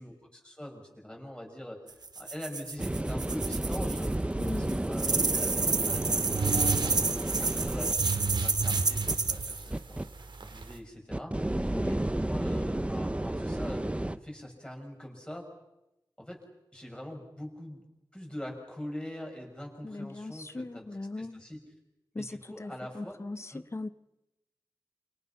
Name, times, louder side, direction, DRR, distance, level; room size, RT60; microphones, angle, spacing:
voice 1, 0.0-1.8 2.1-6.9 7.3-10.0 10.4-15.5 16.2-16.4 16.7-17.8 18.1-20.8 21.1-21.6 22.1-23.2 23.5-23.6, left 1 dB, 10° left, 6.9 m, -43 dB
sound 1, 1.9-4.2 4.4-9.6, right 4 dB, 60° right, 1.2 m, -30 dB
sound 2, 2.8-7.9 9.1-9.2 9.7-10.0 11.1-14.2, right 1 dB, 15° right, 1.0 m, -32 dB
voice 2, 4.4-4.8 11.7-11.9 19.8-21.4 22.1-22.3 22.6-23.9, left 2 dB, 35° left, 1.1 m, -38 dB
sound 3, 5.8-10.8, right 4 dB, 85° right, 2.6 m, -34 dB
28.5 x 28.0 x 5.9 m
wide cardioid pair, 90°, 8 cm